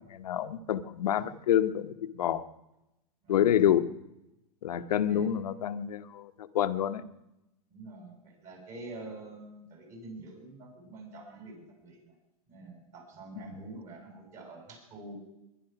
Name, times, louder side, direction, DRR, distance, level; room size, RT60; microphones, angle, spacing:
voice 1, 0.0-2.5 3.3-3.9 4.6-7.0 13.3-13.5, left 10 dB, 80° left, 11 dB, 1.1 m, -28 dB
voice 2, 7.7-12.1 12.5-15.1, right 2 dB, 40° right, 2 dB, 7.6 m, -46 dB
21.5 x 11.0 x 6.0 m, 0.92 s
hypercardioid pair, 115°, 19 cm